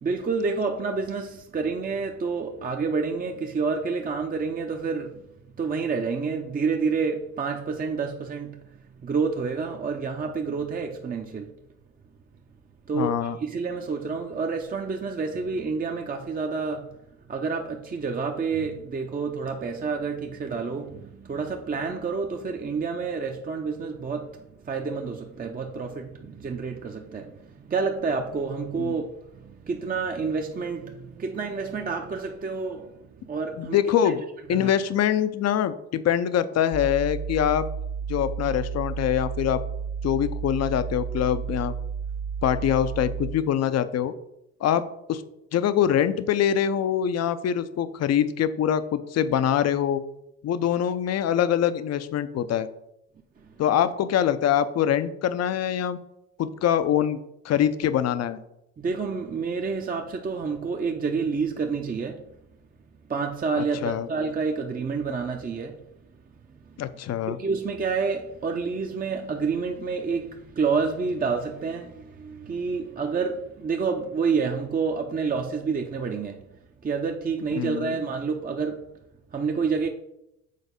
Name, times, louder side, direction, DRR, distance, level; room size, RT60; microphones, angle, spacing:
voice 1, 0.0-5.3 5.6-11.5 12.9-17.0 17.3-34.2 34.5-34.7 53.4-53.5 58.8-62.3 63.1-65.8 66.5-66.8 67.3-76.5 76.8-78.8 79.3-79.9, right 5 dB, 25° right, 0.7 m, -29 dB
voice 2, 12.9-13.4 28.8-28.9 33.6-34.2 34.5-37.7 38.1-39.6 40.0-41.7 42.4-44.1 44.6-45.2 45.5-50.0 50.4-52.7 53.6-56.0 56.4-57.2 57.4-58.4 63.6-64.1 66.8-67.4 77.5-78.0, left 10 dB, 45° left, 0.6 m, -24 dB
sound 1, 36.7-43.5, right 6 dB, 85° right, 1.3 m, -32 dB
6.6 x 4.0 x 5.2 m
hypercardioid pair, 70°, 35 cm